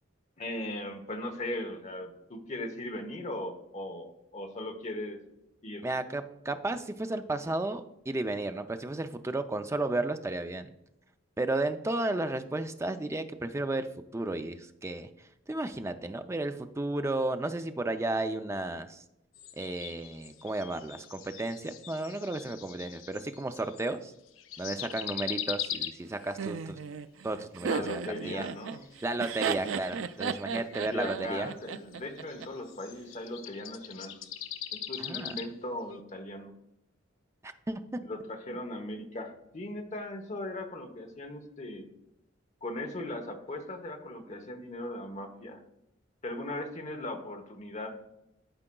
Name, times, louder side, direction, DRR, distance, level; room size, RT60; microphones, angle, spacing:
voice 1, 0.4-5.2 5.6-5.9 27.6-28.8 30.5-30.6 30.9-34.2 34.7-36.5 38.1-41.9 42.6-45.6 46.2-48.0, left 1 dB, 35° left, 5 dB, 1.0 m, -38 dB
voice 2, 5.8-10.7 11.4-13.9 14.1-15.1 15.5-19.0 19.6-24.1 24.6-26.8 27.2-28.4 29.0-31.5 35.0-35.4 37.4-37.8 38.5-38.6, right 2 dB, 15° right, 8 dB, 0.4 m, -33 dB
sound 1, 19.3-24.0 24.3-26.4 28.4-35.5 35.9-36.0, left 10 dB, 90° left, 0.6 m, -41 dB
Laughter, 26.4-32.5, right 6 dB, 85° right, 0.4 m, -35 dB
12.5 x 4.9 x 2.3 m, 0.85 s
head